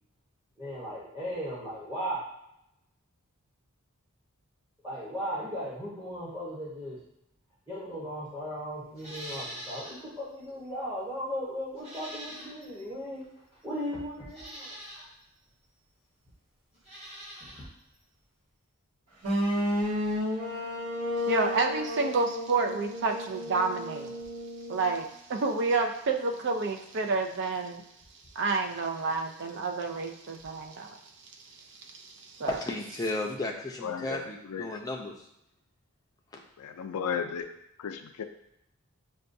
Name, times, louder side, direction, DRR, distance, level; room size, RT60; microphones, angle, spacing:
voice 1, 0.6-2.3 4.8-7.0 7.7-13.2 13.6-14.8, equal, 10° right, -9 dB, 0.9 m, -36 dB
Livestock farm animals working animals, 8.9-10.0 10.4-10.5 11.7-12.8 13.6-13.7 14.3-15.1 16.7-17.7 17.9-18.0, right 1 dB, 30° right, 1.4 m, -43 dB
sound 1, 19.2-25.1, left 1 dB, 80° right, 1.1 m, -32 dB
voice 2, 21.3-24.1 24.7-27.8 28.4-31.0 31.9-32.6, right 4 dB, 55° right, 5 dB, 0.4 m, -29 dB
voice 3, 32.5-35.1, left 2 dB, 15° left, 0 dB, 0.5 m, -34 dB
voice 4, 33.8-34.8 36.6-37.5 37.8-38.2, left 7 dB, 90° left, 8 dB, 0.4 m, -35 dB
6.6 x 2.3 x 2.6 m, 0.82 s
head